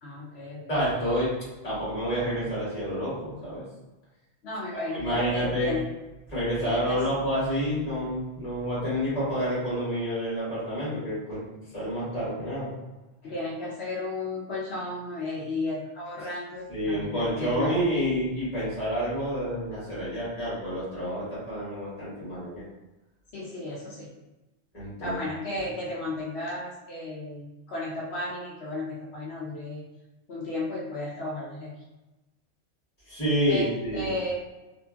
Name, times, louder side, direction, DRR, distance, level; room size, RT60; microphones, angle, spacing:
voice 1, 0.0-0.7 4.4-5.9 6.6-7.0 13.2-17.9 23.3-24.1 25.0-29.8 30.3-31.7 33.5-34.4, left 2 dB, 70° left, -5 dB, 0.9 m, -34 dB
voice 2, 0.7-1.3 1.6-3.6 4.7-5.7 6.3-11.4 11.7-12.7 16.7-22.6 24.7-25.2 33.1-34.1, equal, 35° left, -10 dB, 1.5 m, -29 dB
2.9 x 2.4 x 2.2 m, 1.1 s
omnidirectional pair, 1.1 m